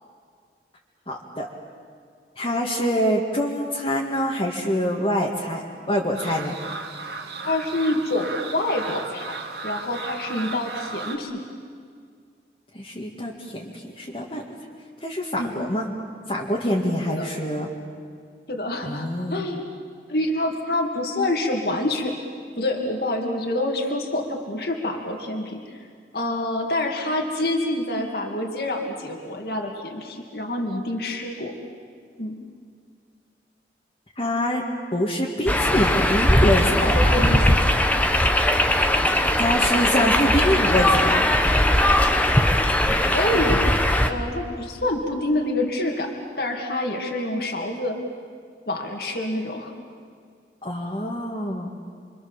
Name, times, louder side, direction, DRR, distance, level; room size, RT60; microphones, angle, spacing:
voice 1, 1.1-1.5 2.4-5.6 5.9-6.6 12.7-14.4 15.0-15.9 16.3-17.7 18.8-19.4 34.2-34.6 34.9-37.1 39.4-41.3 50.6-51.7, equal, 30° left, -4 dB, 2.1 m, -25 dB
sound 1, 6.1-11.2, right 4 dB, 70° right, 2.4 m, -35 dB
voice 2, 7.4-11.4 15.4-15.5 17.2-17.3 18.5-19.7 20.1-22.1 22.6-25.8 26.1-31.5 32.2-32.4 36.8-37.6 43.0-43.8 44.0-48.0 48.7-49.7, left 1 dB, 60° left, 2 dB, 2.5 m, -27 dB
sound 2, 35.5-44.1, left 1 dB, 10° left, 1.2 m, -19 dB
29.5 x 24.5 x 7.3 m, 2.1 s
head